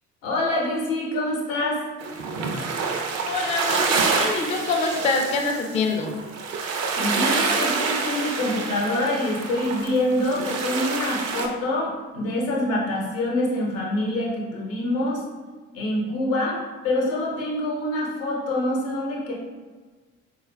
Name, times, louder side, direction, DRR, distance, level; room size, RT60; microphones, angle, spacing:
voice 1, 0.2-1.9 7.0-15.3 15.7-19.3, left 1 dB, 80° left, -2 dB, 0.8 m, -25 dB
sound 1, 2.0-11.5, right 4 dB, 40° right, 0.5 m, -27 dB
voice 2, 3.2-6.2, left 3 dB, 20° left, 3 dB, 0.3 m, -25 dB
4.1 x 2.3 x 2.2 m, 1.4 s
figure-of-eight pair, 50°, 39 cm